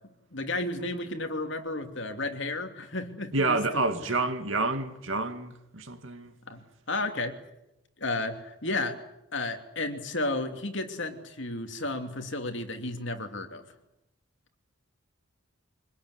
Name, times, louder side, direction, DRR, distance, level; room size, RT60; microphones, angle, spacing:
voice 1, 0.3-3.6 6.5-7.4 8.0-9.0 9.3-13.6, left 2 dB, 55° left, 3.0 m, -33 dB
voice 2, 3.3-6.3, right 3 dB, 65° right, 2.4 m, -28 dB
25.0 x 21.0 x 9.8 m
head